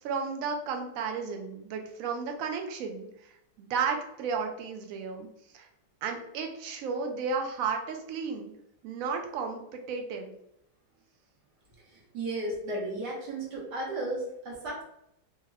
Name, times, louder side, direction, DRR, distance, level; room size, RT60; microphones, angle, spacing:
voice 1, 0.0-3.3 3.6-5.3 5.5-5.7 6.0-8.5 8.8-10.3, right 5 dB, 65° right, 4 dB, 0.9 m, -33 dB
voice 2, 11.9-14.8, right 1 dB, 80° right, -4 dB, 1.6 m, -34 dB
3.5 x 2.1 x 3.3 m, 0.79 s
omnidirectional pair, 1.8 m